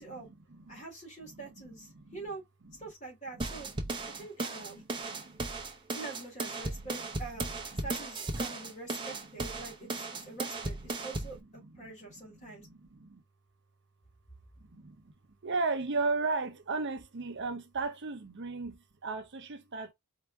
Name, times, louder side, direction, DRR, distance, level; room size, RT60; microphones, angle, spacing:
voice 1, 0.0-0.8 1.2-1.5 1.9-2.3 2.6-2.7 3.6-4.3 4.5-5.4 6.7-6.9 7.7-7.9 8.6-8.7 9.0-11.1 11.6-11.9 12.2-13.2 14.7-15.1 15.4-19.9, right 3 dB, 50° right, 0.7 m, -37 dB
voice 2, 0.7-2.4 2.8-3.7 4.2-4.8 5.9-7.5 7.8-10.8 11.0-12.6, right 3 dB, 30° left, 2.7 m, -45 dB
sound 1, 3.4-11.4, right 2 dB, 20° right, 0.8 m, -36 dB
4.5 x 2.9 x 3.4 m
head